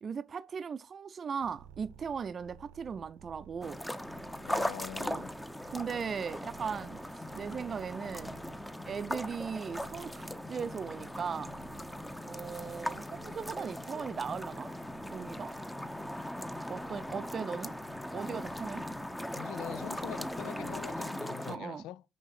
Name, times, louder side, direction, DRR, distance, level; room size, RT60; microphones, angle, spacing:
voice 1, 0.0-3.8 5.0-5.2 5.7-7.0 7.3-8.4 8.9-11.6 12.3-14.7 15.1-15.5 16.7-17.7 18.1-18.8 21.5-21.8, right 6 dB, 45° right, 0.5 m, -38 dB
sound 1, 1.4-21.1, right 7 dB, 85° right, 0.8 m, -56 dB
sound 2, 3.6-21.6, left 1 dB, 5° left, 0.8 m, -39 dB
voice 2, 4.5-5.3 17.1-17.2 19.4-22.0, left 13 dB, 70° left, 0.3 m, -43 dB
sound 3, 9.0-21.0, left 5 dB, 40° left, 2.5 m, -63 dB
6.3 x 5.4 x 5.8 m
hypercardioid pair, 50°, 0 cm